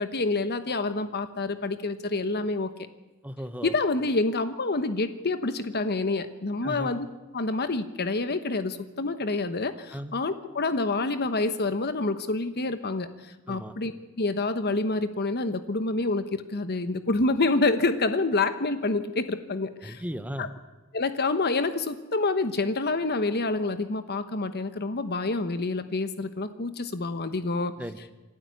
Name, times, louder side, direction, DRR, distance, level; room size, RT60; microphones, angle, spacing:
voice 1, 0.0-2.7 3.6-7.1 7.3-13.1 13.5-13.9 14.2-20.0 20.4-20.5 20.9-27.7, left 3 dB, 50° left, 11 dB, 1.1 m, -27 dB
voice 2, 3.2-3.7 6.6-6.9 9.9-10.1 13.5-13.7 19.8-20.5 27.8-28.1, equal, 5° right, 11 dB, 1.1 m, -36 dB
27.0 x 12.5 x 9.7 m, 1.1 s
head